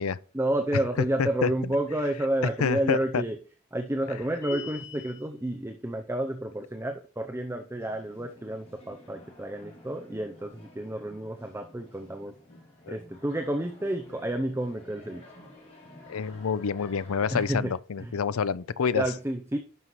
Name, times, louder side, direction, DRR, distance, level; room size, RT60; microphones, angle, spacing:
voice 1, 0.3-3.4 3.7-12.3 12.9-15.2 17.3-17.7 18.0-18.2 19.0-19.6, right 1 dB, 10° right, 0.6 m, -30 dB
voice 2, 1.2-1.7 2.6-3.2 12.9-13.0 16.1-19.0, left 6 dB, 85° left, 0.5 m, -28 dB
sound 1, 4.4-5.3, left 5 dB, 15° left, 1.3 m, -40 dB
sound 2, 7.8-17.4, left 1 dB, 30° left, 3.0 m, -51 dB
11.0 x 5.6 x 3.1 m
head